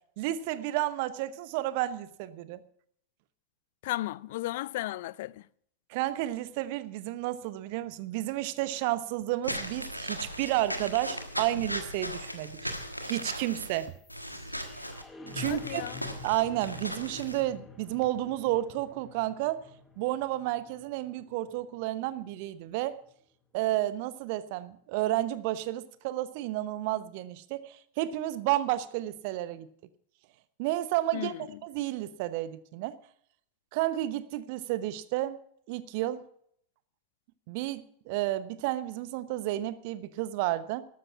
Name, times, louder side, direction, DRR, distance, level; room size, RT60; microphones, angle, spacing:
voice 1, 0.2-2.6 5.9-12.6 13.0-14.0 15.3-15.8 16.2-19.7 20.0-22.9 23.5-29.7 30.6-31.3 31.6-33.0 33.7-35.4 35.7-36.2 37.5-40.8, right 15 dB, 45° right, 1.0 m, -31 dB
voice 2, 3.8-5.4 15.5-16.0 31.1-31.4, left 16 dB, 55° left, 0.4 m, -34 dB
Walk footsteps / Squeak, 9.4-17.4, equal, 90° left, 1.5 m, -37 dB
sound 1, 13.0-23.1, left 3 dB, 10° left, 1.7 m, -49 dB
13.5 x 12.5 x 4.6 m
figure-of-eight pair, 90°, 0 cm